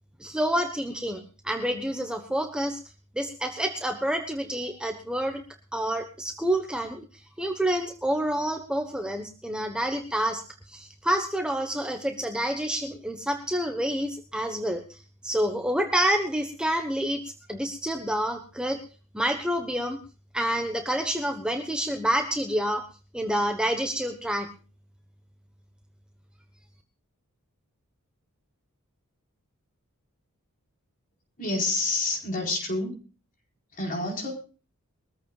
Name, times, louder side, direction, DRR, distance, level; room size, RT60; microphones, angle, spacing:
voice 1, 0.2-2.8 3.1-5.4 5.7-7.0 7.4-10.4 10.7-15.0 15.2-17.2 17.5-18.8 19.1-20.0 20.3-22.8 23.1-24.5, right 1 dB, 5° right, 4 dB, 1.1 m, -28 dB
voice 2, 31.4-33.0 33.7-34.3, left 2 dB, 40° left, 1 dB, 4.3 m, -28 dB
22.5 x 14.5 x 2.4 m, 0.35 s
head